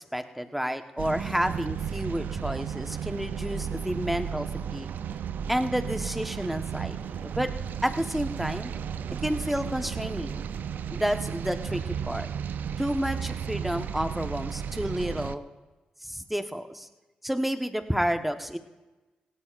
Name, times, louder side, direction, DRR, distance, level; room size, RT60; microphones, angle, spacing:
voice 1, 0.0-4.5 4.7-4.9 5.5-7.5 7.8-8.7 9.2-10.5 10.9-11.8 12.1-12.3 12.8-15.4 16.0-16.9 17.2-18.6, equal, 5° right, 7 dB, 1.2 m, -30 dB
sound 1, 1.0-15.4, right 8 dB, 70° right, 0.5 m, -34 dB
19.5 x 16.5 x 2.5 m, 1.2 s
supercardioid pair, 50°, 3 cm